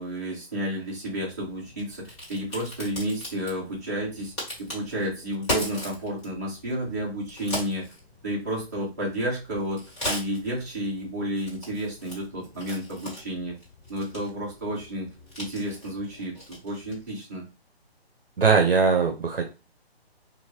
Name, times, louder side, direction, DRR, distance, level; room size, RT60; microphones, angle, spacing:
voice 1, 0.0-4.3 4.6-7.8 8.2-13.5 13.9-15.1 15.4-17.4, right 1 dB, 15° right, -6 dB, 0.8 m, -31 dB
Crack, 1.0-17.1, left 1 dB, 30° left, 1.8 m, -39 dB
voice 2, 18.4-19.5, right 5 dB, 60° right, 4 dB, 0.7 m, -20 dB
2.6 x 2.6 x 3.1 m, 0.29 s
hypercardioid pair, 170°, 32 cm